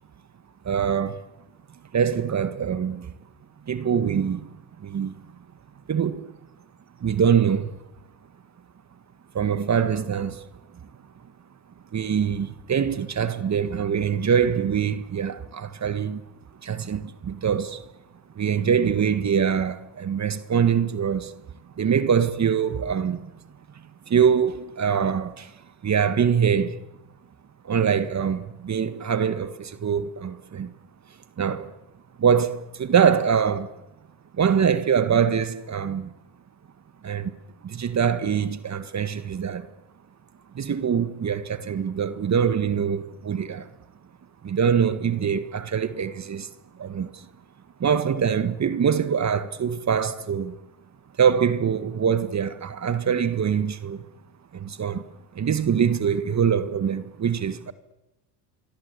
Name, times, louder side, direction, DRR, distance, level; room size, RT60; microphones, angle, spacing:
voice 1, 0.6-1.2 1.9-3.1 3.7-4.5 4.8-5.1 5.9-6.3 7.0-7.7 9.3-10.4 11.9-16.2 16.6-17.8 18.3-21.3 21.8-23.2 24.1-25.5 25.8-26.8 27.6-30.7 31.4-31.7 32.2-33.7 34.4-36.1 37.0-37.3 37.6-39.7 40.5-43.7 44.4-46.5 46.8-47.3 47.8-50.6 51.2-54.0 54.5-55.1 55.3-57.7, right 7 dB, 40° right, 1.7 m, -23 dB
26.0 x 24.5 x 8.4 m
supercardioid pair, 70°, 44 cm